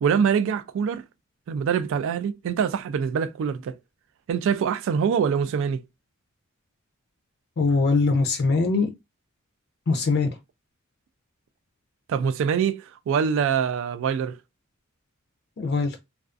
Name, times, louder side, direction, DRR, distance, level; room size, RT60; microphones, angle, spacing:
voice 1, 0.0-1.0 1.5-3.8 4.3-5.8 12.1-14.4, right 7 dB, 65° right, 0.3 m, -24 dB
voice 2, 7.6-8.9 9.9-10.4 15.6-16.0, left 3 dB, 50° left, 0.4 m, -22 dB
2.4 x 2.3 x 2.4 m
head